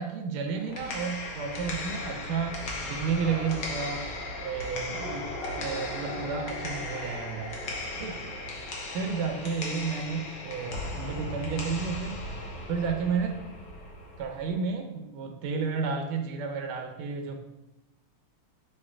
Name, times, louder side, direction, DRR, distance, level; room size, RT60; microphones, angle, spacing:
voice 1, 0.0-4.0 4.4-7.6 8.0-8.2 8.9-12.2 12.7-13.4 14.2-17.4, right 5 dB, 85° right, 4 dB, 1.4 m, -32 dB
sound 1, 0.5-14.5, left 2 dB, 60° left, 1.0 m, -37 dB
5.9 x 3.1 x 2.5 m, 0.95 s
omnidirectional pair, 2.3 m